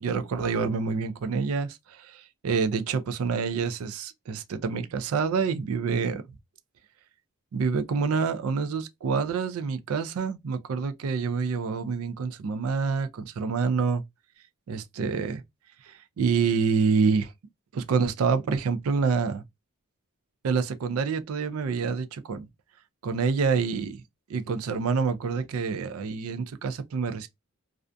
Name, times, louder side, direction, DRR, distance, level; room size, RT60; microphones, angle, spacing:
voice 1, 0.0-6.2 7.5-14.0 14.7-15.4 15.8-17.3 17.7-19.4 20.4-22.5 23.0-24.0 24.3-27.3, right 5 dB, 75° right, 0.4 m, -27 dB
2.4 x 2.2 x 2.5 m
head